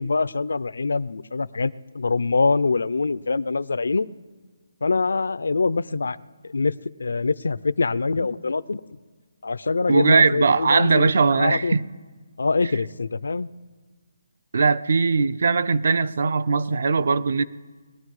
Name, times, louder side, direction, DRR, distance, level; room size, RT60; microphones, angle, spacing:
voice 1, 0.0-4.1 4.8-6.2 6.4-6.7 7.0-8.8 9.4-11.8 12.4-13.5, left 4 dB, 90° left, 0.5 m, -24 dB
voice 2, 9.9-11.9 14.5-17.4, right 4 dB, 55° right, 0.5 m, -20 dB
20.5 x 12.0 x 4.8 m
hypercardioid pair, 175°, 0 cm